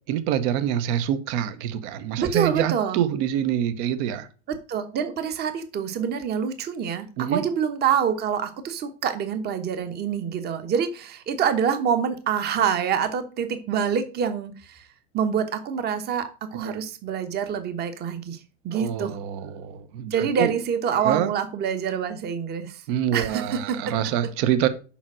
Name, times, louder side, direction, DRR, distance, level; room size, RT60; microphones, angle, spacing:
voice 1, 0.1-4.3 7.2-7.4 16.6-16.8 18.7-20.5 21.0-21.3 22.9-24.7, right 10 dB, 50° right, 1.0 m, -26 dB
voice 2, 2.2-3.0 4.5-14.8 15.1-18.4 18.6-19.2 20.1-22.8 23.1-23.8, right 7 dB, 25° right, 1.1 m, -26 dB
7.2 x 5.2 x 6.1 m
supercardioid pair, 140°, 37 cm